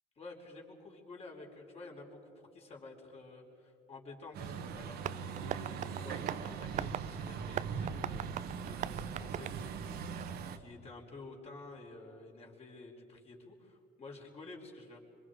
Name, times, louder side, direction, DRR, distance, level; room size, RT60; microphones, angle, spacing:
voice 1, 0.2-15.0, left 3 dB, 40° left, -1 dB, 4.4 m, -51 dB
Truck, 4.3-10.6, right 6 dB, 70° right, 1.4 m, -40 dB
Tap, 5.0-10.5, right 10 dB, 45° right, 0.4 m, -42 dB
25.5 x 23.5 x 5.1 m, 2.7 s
cardioid pair, 110°, 17 cm